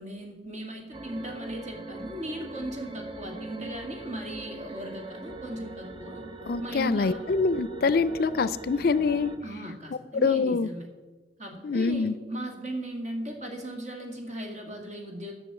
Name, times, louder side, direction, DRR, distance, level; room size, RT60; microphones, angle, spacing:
voice 1, 0.0-6.2 6.6-7.2 9.4-10.9 11.4-15.3, right 1 dB, 45° right, 2 dB, 2.2 m, -37 dB
sound 1, 0.9-9.4, right 3 dB, 30° right, 0.9 m, -41 dB
voice 2, 6.5-9.3 10.2-10.7 11.6-12.2, left 4 dB, 60° left, 16 dB, 0.4 m, -25 dB
11.0 x 6.2 x 8.2 m, 1.3 s
head